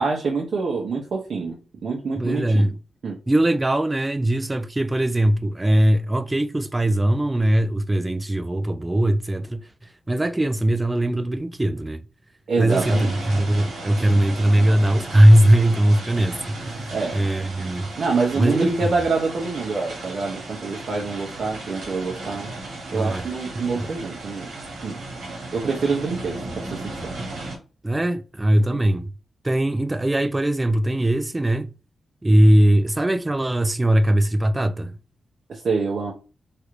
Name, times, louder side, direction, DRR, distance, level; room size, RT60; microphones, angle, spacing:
voice 1, 0.0-1.6 1.8-2.6 3.0-3.2 12.5-13.1 16.9-17.2 18.0-22.5 22.9-24.5 24.8-25.0 25.5-26.4 26.7-27.1 28.7-28.8 35.5-36.1, right 4 dB, 65° right, 0.7 m, -26 dB
voice 2, 2.2-2.7 3.3-9.6 10.1-12.0 12.6-17.9 18.3-19.0 22.9-23.3 23.6-23.9 27.8-29.1 29.4-31.7 32.2-35.0, right 1 dB, 20° right, 0.3 m, -20 dB
sound 1, 12.7-27.6, right 2 dB, 90° right, 1.2 m, -35 dB
3.2 x 2.4 x 3.0 m
cardioid pair, 85°, 0 cm